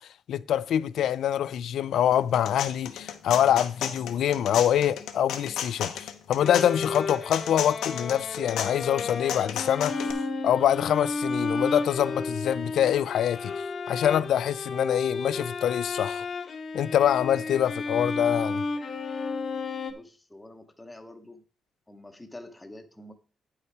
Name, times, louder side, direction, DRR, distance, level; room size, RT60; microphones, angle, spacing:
voice 1, 0.3-13.5 13.9-16.3 16.7-18.6, left 10 dB, 65° left, 0.4 m, -25 dB
sound 1, 2.1-10.1, left 9 dB, 90° left, 0.9 m, -34 dB
Bowed string instrument, 6.4-19.9, left 3 dB, 35° left, 0.8 m, -32 dB
voice 2, 19.9-21.4 21.9-23.1, left 1 dB, 10° left, 0.8 m, -46 dB
9.0 x 5.7 x 4.7 m
cardioid pair, 165°, 0 cm